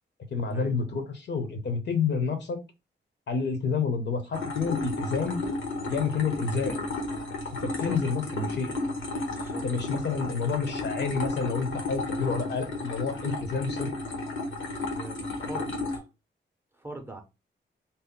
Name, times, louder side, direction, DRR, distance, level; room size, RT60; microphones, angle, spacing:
voice 1, 0.3-2.6 3.3-5.4 5.9-6.8 7.6-8.7 9.6-13.9, left 5 dB, 60° left, 0.7 m, -29 dB
sound 1, 4.3-16.0, left 2 dB, 90° left, 1.0 m, -33 dB
voice 2, 7.6-8.0 9.2-9.6 14.8-16.1 16.7-17.2, right 2 dB, 10° right, 0.5 m, -42 dB
2.6 x 2.0 x 3.6 m
wide cardioid pair, 175°, 20 cm